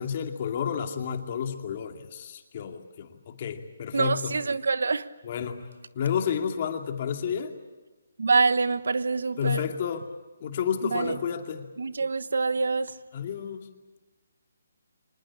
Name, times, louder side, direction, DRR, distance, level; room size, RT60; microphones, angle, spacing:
voice 1, 0.0-4.4 5.2-5.6 6.0-7.5 9.4-10.1 10.4-11.7 13.1-13.7, left 8 dB, 35° left, 2.4 m, -31 dB
voice 2, 3.9-5.0 8.2-9.6 10.9-11.2 11.8-12.9, right 4 dB, 75° right, 1.2 m, -25 dB
25.5 x 20.0 x 8.7 m
hypercardioid pair, 165°, 0 cm